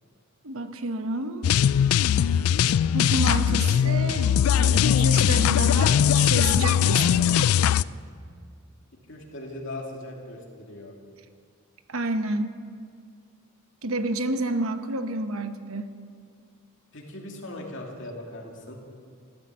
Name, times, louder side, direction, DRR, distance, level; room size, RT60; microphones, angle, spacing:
voice 1, 0.4-1.5 2.9-7.5 11.9-12.5 13.8-15.9, right 2 dB, 70° right, 8 dB, 1.0 m, -30 dB
sound 1, 1.4-7.8, left 9 dB, 75° left, 0.3 m, -20 dB
voice 2, 9.1-10.9 16.9-18.7, left 1 dB, 60° left, 0 dB, 2.6 m, -39 dB
14.5 x 12.5 x 7.5 m, 2.2 s
head